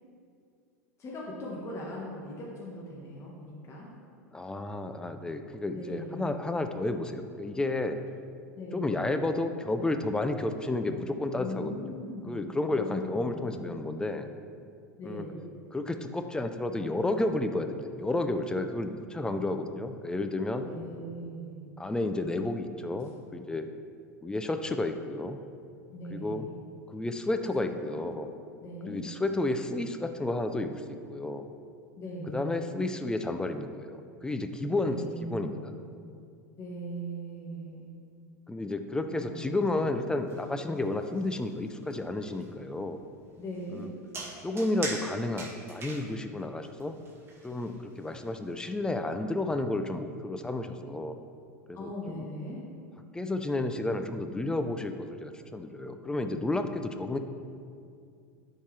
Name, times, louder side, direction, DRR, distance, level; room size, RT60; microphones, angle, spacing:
voice 1, 1.0-3.9 5.7-6.4 8.5-9.1 11.4-13.7 15.0-15.5 20.6-21.6 23.0-23.1 25.9-26.5 27.6-28.1 28.6-29.0 32.0-32.8 34.8-35.7 36.6-37.9 39.2-39.9 43.4-43.9 51.7-52.6, equal, 30° left, -4 dB, 1.3 m, -40 dB
voice 2, 4.3-8.0 8.7-11.9 12.3-14.3 15.0-15.3 15.7-20.7 21.8-23.7 24.2-25.4 26.1-26.5 26.9-28.3 28.9-30.8 31.1-31.5 32.3-35.7 38.5-43.0 43.7-43.9 44.4-47.0 47.4-51.2 51.7-52.3 53.1-57.2, left 2 dB, 10° left, 7 dB, 0.4 m, -31 dB
sound 1, 39.8-48.5, right 3 dB, 25° right, 1.6 m, -43 dB
9.8 x 4.6 x 3.2 m, 2.3 s
hypercardioid pair, 95°, 9 cm